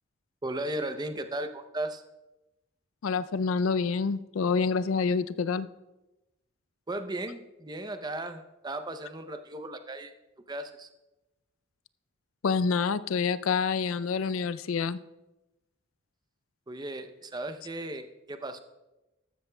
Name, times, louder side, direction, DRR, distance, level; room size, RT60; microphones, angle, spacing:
voice 1, 0.4-2.0 6.9-10.1 10.5-10.9 16.7-18.6, right 1 dB, 20° right, 8 dB, 0.6 m, -36 dB
voice 2, 3.0-5.7 12.4-15.0, left 5 dB, 80° left, 15 dB, 0.4 m, -27 dB
13.5 x 13.0 x 2.3 m, 1.0 s
head